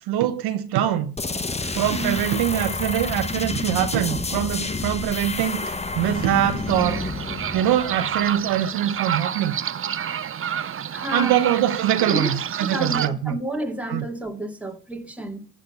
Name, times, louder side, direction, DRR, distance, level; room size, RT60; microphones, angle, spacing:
voice 1, 0.1-1.1 1.6-7.0 7.5-9.6 11.1-13.4 13.9-14.0, right 11 dB, 70° right, 1.2 m, -23 dB
sound 1, 1.2-8.7, left 3 dB, 15° left, 1.0 m, -29 dB
voice 2, 1.9-2.2 10.9-11.6 12.0-12.3 12.6-15.5, right 1 dB, 5° right, 2.4 m, -30 dB
sound 2, 6.7-13.1, right 8 dB, 30° right, 0.6 m, -29 dB
14.5 x 5.0 x 8.0 m
hypercardioid pair, 55°, 40 cm